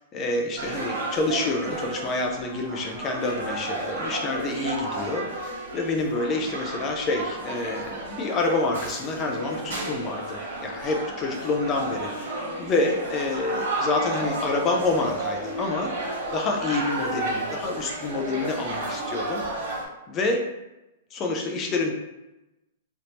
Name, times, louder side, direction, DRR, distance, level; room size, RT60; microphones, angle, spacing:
voice 1, 0.1-12.3 12.6-19.7 20.1-20.5 21.1-21.9, left 3 dB, 20° left, 2 dB, 0.3 m, -28 dB
sound 1, 0.6-19.8, right 2 dB, 85° right, 1.2 m, -32 dB
3.4 x 2.6 x 2.8 m, 0.96 s
hypercardioid pair, 170°, 0 cm